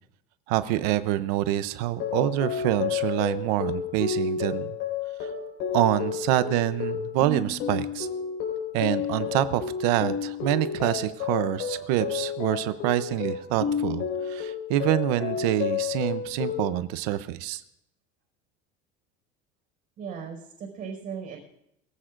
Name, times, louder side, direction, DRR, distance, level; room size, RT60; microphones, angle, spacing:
voice 1, 0.5-4.8 5.2-5.3 5.7-8.1 8.7-17.6, right 14 dB, 75° right, 13 dB, 0.7 m, -26 dB
sound 1, 1.9-16.7, left 7 dB, 65° left, 4.8 m, -31 dB
voice 2, 20.0-21.4, right 6 dB, 40° right, -2 dB, 4.8 m, -37 dB
22.5 x 15.0 x 2.5 m, 0.78 s
cardioid pair, 165°, 20 cm